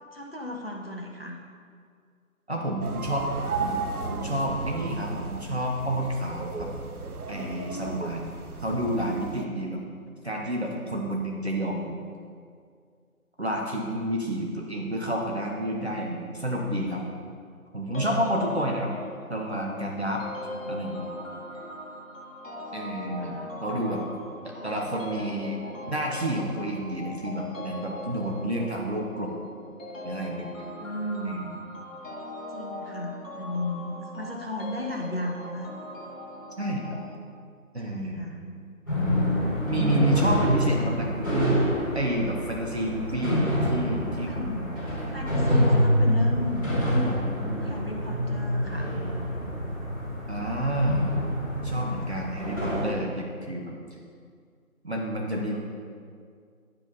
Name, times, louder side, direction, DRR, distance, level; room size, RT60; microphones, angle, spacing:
voice 1, 0.1-1.4 7.3-8.1 20.5-20.7 23.1-23.6 30.8-31.3 32.5-35.8 37.8-38.7 44.1-47.2 47.5-48.9, left 2 dB, 45° left, 0 dB, 0.7 m, -35 dB
voice 2, 2.5-3.3 3.6-6.7 7.3-8.3 8.6-9.8 10.2-12.0 13.4-17.0 17.7-18.9 19.3-20.2 20.7-21.1 22.7-24.0 24.4-25.6 25.9-29.3 30.0-30.5 31.2-31.6 36.6-37.1 37.7-38.3 39.7-41.7 41.9-45.3 45.7-45.8 50.3-51.0 51.6-53.8 54.8-55.6, right 1 dB, 50° right, -1 dB, 0.9 m, -29 dB
sound 1, 2.8-9.4, right 4 dB, 85° right, 0.7 m, -35 dB
sound 2, 17.9-37.2, left 1 dB, 60° left, 1.5 m, -40 dB
sound 3, 38.9-52.8, equal, 15° left, 2.2 m, -26 dB
10.5 x 5.4 x 4.1 m, 2.2 s
figure-of-eight pair, 170°, 43 cm